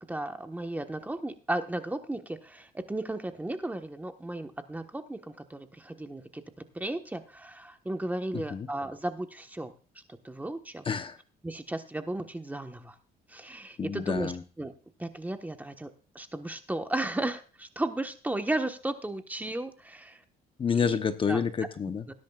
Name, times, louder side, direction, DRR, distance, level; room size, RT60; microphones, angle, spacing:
voice 1, 0.1-6.4 6.7-9.7 10.2-10.9 11.4-12.9 13.3-14.3 14.6-14.7 15.0-20.2 21.3-21.4 22.1-22.2, right 1 dB, 10° right, 7 dB, 1.2 m, -34 dB
voice 2, 8.3-8.7 10.8-11.2 13.8-14.4 20.6-22.1, left 6 dB, 30° left, 9 dB, 0.9 m, -29 dB
19.0 x 10.5 x 2.4 m, 0.37 s
cardioid pair, 110°, 17 cm